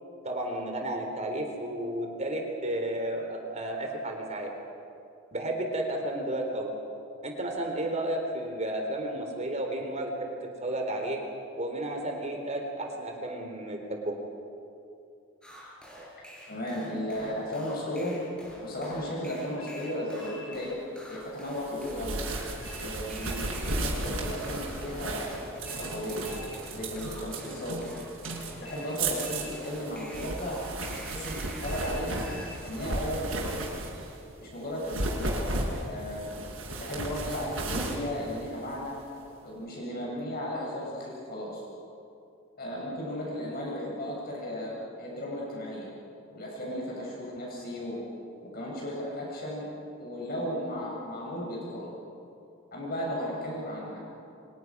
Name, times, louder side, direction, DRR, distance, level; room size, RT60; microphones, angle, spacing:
voice 1, 0.2-4.5 5.3-6.7 7.2-10.3 10.6-11.2 11.6-14.1, right 1 dB, 35° right, 2 dB, 3.9 m, -32 dB
sound 1, 15.4-33.7, equal, 5° left, 6.6 m, -47 dB
voice 2, 16.5-18.2 18.6-20.8 21.1-22.2 22.8-26.3 26.7-27.8 28.6-30.6 30.9-32.3 32.6-33.7 34.4-36.3 36.8-39.0 39.4-41.6 42.5-45.9 46.3-48.0 48.4-49.7 50.0-51.9 52.7-54.0, equal, 50° left, -3 dB, 7.6 m, -35 dB
sound 2, 19.6-20.6 22.6-23.6 25.6-26.6 28.6-29.6 31.6-32.6, left 2 dB, 80° left, 3.7 m, -47 dB
sound 3, 21.6-34.2 34.7-39.0, right 2 dB, 75° right, 6.0 m, -35 dB
30.0 x 25.0 x 6.3 m, 2.6 s
head